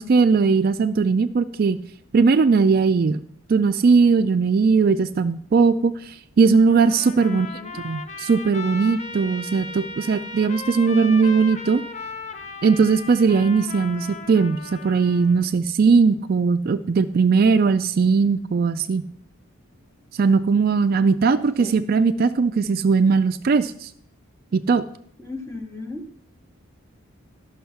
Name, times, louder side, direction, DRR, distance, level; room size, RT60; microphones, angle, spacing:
voice 1, 0.0-1.8 2.1-3.2 3.5-7.5 7.8-11.8 12.6-19.1 20.2-23.9 24.5-24.8, right 5 dB, 45° right, 11 dB, 0.3 m, -19 dB
Trumpet, 6.7-15.5, left 4 dB, 35° left, 0.6 m, -37 dB
voice 2, 7.3-7.7 21.6-21.8 25.2-26.1, left 3 dB, 15° left, 5 dB, 1.0 m, -35 dB
11.0 x 6.2 x 5.7 m, 0.65 s
head